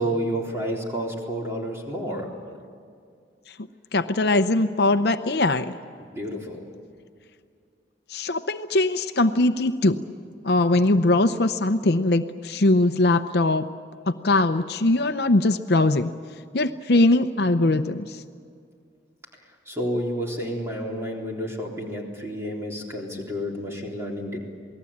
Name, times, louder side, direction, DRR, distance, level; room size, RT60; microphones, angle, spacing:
voice 1, 0.0-2.3 6.0-6.6 19.7-24.4, equal, 15° right, -1 dB, 3.8 m, -30 dB
voice 2, 3.9-5.7 8.1-10.0 10.4-13.6 14.2-16.1 16.5-18.1, left 2 dB, 60° left, 9 dB, 0.7 m, -21 dB
28.0 x 19.5 x 8.7 m, 2.2 s
head